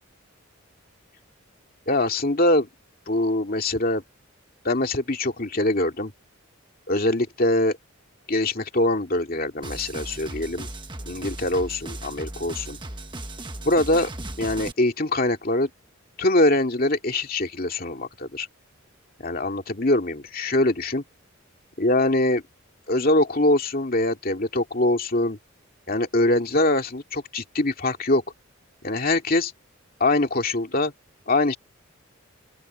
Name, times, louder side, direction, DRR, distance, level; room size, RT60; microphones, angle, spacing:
voice 1, 1.9-2.7 3.1-4.0 4.6-6.1 6.9-7.8 8.3-10.7 11.1-12.8 13.6-14.1 14.4-15.7 16.2-18.5 19.2-21.0 21.8-22.4 22.9-25.4 25.9-28.2 28.8-29.5 30.0-30.9 31.3-31.6, left 2 dB, 45° left, 2.5 m, -23 dB
sound 1, 9.6-14.7, right 2 dB, 20° right, 1.3 m, -36 dB
open air
head